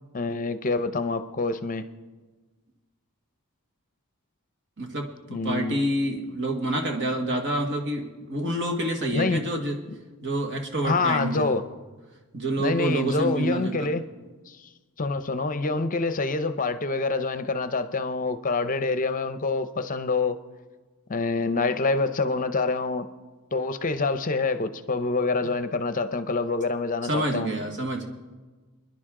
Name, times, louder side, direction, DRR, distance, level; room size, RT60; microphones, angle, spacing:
voice 1, 0.1-1.8 5.3-5.8 9.1-9.4 10.8-11.6 12.6-14.0 14.5-14.7 15.0-20.4 21.1-23.1 23.5-27.5, left 3 dB, 35° left, 11 dB, 0.7 m, -26 dB
voice 2, 4.8-9.8 10.2-11.5 12.3-13.9 25.4-25.5 27.0-28.0, right 1 dB, 55° right, 3 dB, 1.8 m, -28 dB
29.0 x 10.5 x 3.8 m, 1.3 s
head